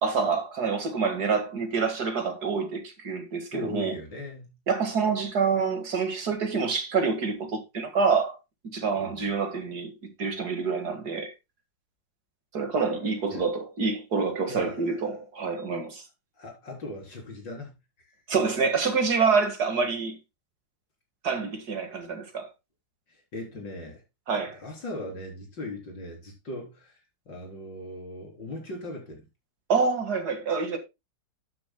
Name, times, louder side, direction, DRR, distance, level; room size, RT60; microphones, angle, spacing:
voice 1, 0.0-4.0 4.7-8.4 8.7-9.9 10.2-11.3 12.5-16.0 18.3-20.2 21.2-22.5 24.3-24.6 29.7-30.8, right 5 dB, 55° right, 2.4 m, -27 dB
voice 2, 3.5-4.5 8.9-9.2 13.3-13.5 14.5-15.0 16.4-18.2 23.1-24.0 24.6-27.0 27.3-29.2, left 1 dB, 75° left, 4.5 m, -39 dB
11.5 x 9.7 x 2.2 m
omnidirectional pair, 2.0 m